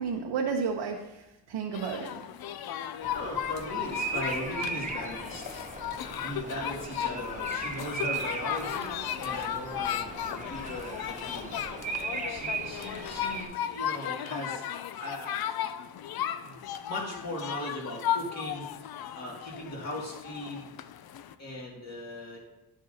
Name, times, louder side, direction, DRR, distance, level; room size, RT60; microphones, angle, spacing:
voice 1, 0.0-2.2, right 5 dB, 75° right, 1 dB, 0.9 m, -32 dB
sound 1, 1.7-21.3, left 10 dB, 60° left, 0.5 m, -35 dB
Bird vocalization bird call bird song, 3.0-13.4, right 4 dB, 20° right, 0.7 m, -38 dB
voice 2, 3.1-5.6 6.1-8.9 9.2-12.0 12.3-14.6 15.0-15.3 16.4-16.6 16.8-18.7 19.1-20.7 21.4-22.4, left 1 dB, 40° left, -3 dB, 2.3 m, -38 dB
10.0 x 7.7 x 2.8 m, 1.0 s
wide cardioid pair, 155°, 42 cm